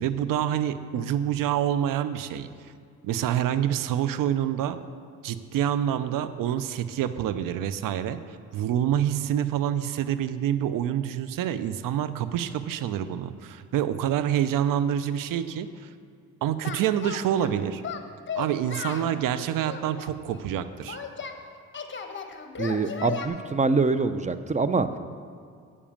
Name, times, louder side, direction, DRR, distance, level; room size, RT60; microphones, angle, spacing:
voice 1, 0.0-2.5 3.0-4.8 5.2-8.2 8.5-15.9 16.4-17.8 18.4-21.0, right 10 dB, 70° right, 13 dB, 0.7 m, -27 dB
Singing, 16.6-17.5 17.8-19.1 19.7-21.4 21.7-23.3, left 6 dB, 35° left, 1.2 m, -35 dB
voice 2, 22.6-24.9, right 4 dB, 20° right, 12 dB, 0.7 m, -24 dB
8.4 x 7.3 x 7.1 m, 2.3 s
supercardioid pair, 60°, 34 cm